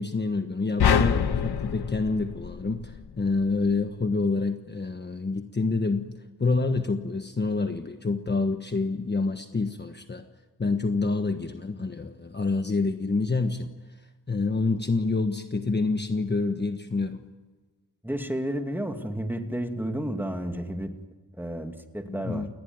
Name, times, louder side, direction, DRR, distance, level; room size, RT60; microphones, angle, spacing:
voice 1, 0.0-10.2 10.6-13.7 14.3-17.2 22.1-22.5, left 3 dB, 25° left, 6 dB, 1.3 m, -27 dB
sound 1, 0.8-3.2, left 7 dB, 80° left, 1.5 m, -25 dB
voice 2, 18.0-20.9 21.4-22.5, right 1 dB, 5° right, 5 dB, 2.4 m, -31 dB
29.5 x 20.0 x 9.5 m, 1.3 s
wide cardioid pair, 135°, 39 cm